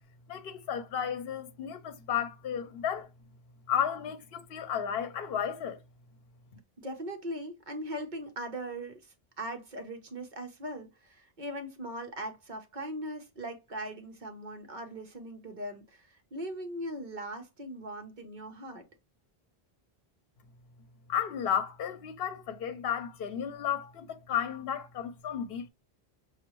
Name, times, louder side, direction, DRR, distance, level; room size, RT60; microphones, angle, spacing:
voice 1, 0.3-3.1 3.7-5.8 21.1-25.7, left 8 dB, 70° left, 0.8 m, -33 dB
voice 2, 6.8-18.9, right 1 dB, 50° right, 1.0 m, -40 dB
5.9 x 2.4 x 3.0 m
omnidirectional pair, 1.0 m